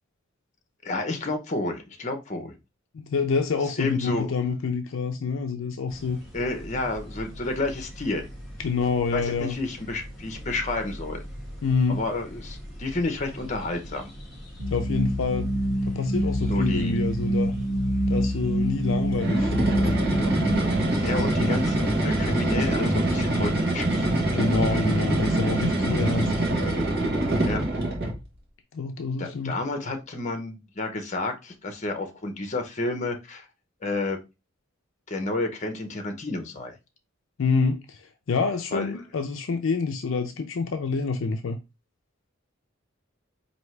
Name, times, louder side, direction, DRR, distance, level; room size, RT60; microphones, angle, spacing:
voice 1, 0.8-2.6 3.8-4.3 6.3-8.3 9.1-11.2 11.9-14.1 16.5-16.9 21.0-24.1 27.4-27.6 29.2-33.5 33.8-34.2 35.1-36.8 38.7-38.9, left 2 dB, 35° left, 0.8 m, -30 dB
voice 2, 2.9-6.2 8.6-9.6 11.6-12.0 14.7-15.5 15.9-17.5 18.1-19.5 24.3-26.3 28.7-29.5 37.4-41.6, left 4 dB, 70° left, 0.4 m, -27 dB
sound 1, 5.9-22.1, equal, ahead, 1.6 m, -42 dB
sound 2, 14.6-20.6, equal, 80° right, 1.4 m, -26 dB
sound 3, 19.1-28.2, right 1 dB, 50° right, 1.1 m, -24 dB
4.4 x 2.7 x 3.2 m
head